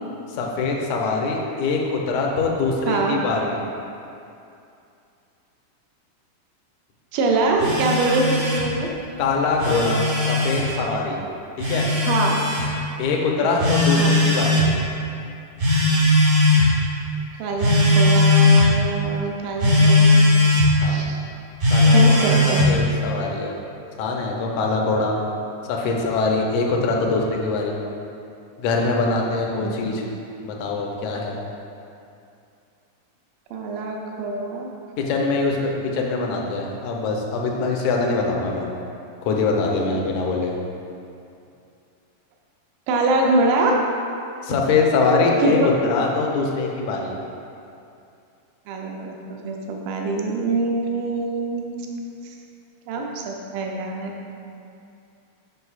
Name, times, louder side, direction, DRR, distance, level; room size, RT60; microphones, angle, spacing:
voice 1, 0.3-3.6 9.2-11.2 11.6-11.9 13.0-14.6 20.8-21.1 21.7-23.5 24.0-25.2 25.6-27.8 28.6-30.1 30.4-31.4 35.0-38.7 39.2-40.5 44.4-47.1, left 3 dB, 75° left, 0 dB, 1.9 m, -23 dB
voice 2, 2.9-3.2 7.1-8.9 12.1-12.4 13.7-14.2 17.4-20.3 20.7-21.2 21.9-22.7 29.6-30.0 33.5-34.7 42.9-43.8 45.4-45.6 48.7-51.9 52.2-52.3 52.9-54.1, right 3 dB, 85° right, 0 dB, 2.3 m, -24 dB
Telephone, 7.6-8.7 9.4-10.6 11.6-12.6 13.6-14.7 15.6-16.7 17.6-18.7 19.6-20.7 21.6-22.7, left 2 dB, 55° right, 1.0 m, -17 dB
7.9 x 6.3 x 2.4 m, 2.6 s
omnidirectional pair, 3.7 m